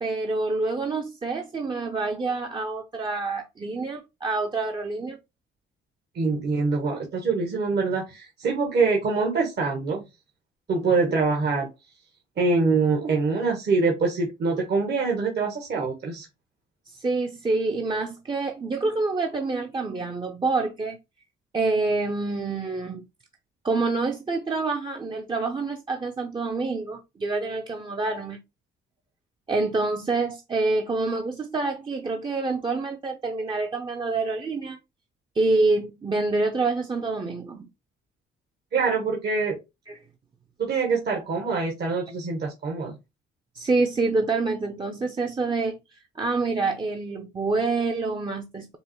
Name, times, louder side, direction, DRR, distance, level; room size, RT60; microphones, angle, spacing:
voice 1, 0.0-5.2 16.9-21.0 21.5-23.0 23.6-28.4 29.5-34.8 35.4-37.7 39.9-40.0 43.5-45.8 46.2-48.8, right 3 dB, 25° right, 0.5 m, -27 dB
voice 2, 6.1-10.0 10.7-11.7 12.4-16.3 38.7-39.6 40.6-43.0, right 4 dB, 55° right, 1.1 m, -24 dB
5.4 x 2.0 x 3.0 m
cardioid pair, 90°, 20 cm